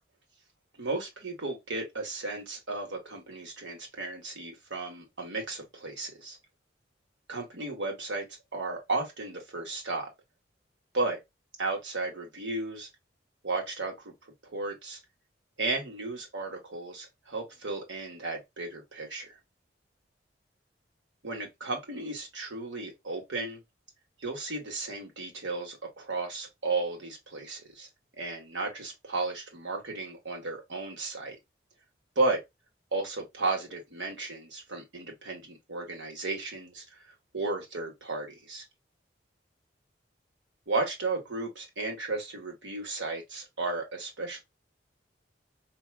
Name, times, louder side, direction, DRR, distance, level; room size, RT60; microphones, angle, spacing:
voice 1, 0.8-6.4 7.3-8.2 8.5-10.1 10.9-11.2 11.6-12.9 13.4-14.1 14.4-15.0 15.6-19.4 21.2-23.6 24.2-27.9 28.2-31.4 32.1-32.4 32.9-38.6 40.7-44.4, right 3 dB, 80° right, 1.5 m, -34 dB
4.6 x 2.8 x 2.3 m
head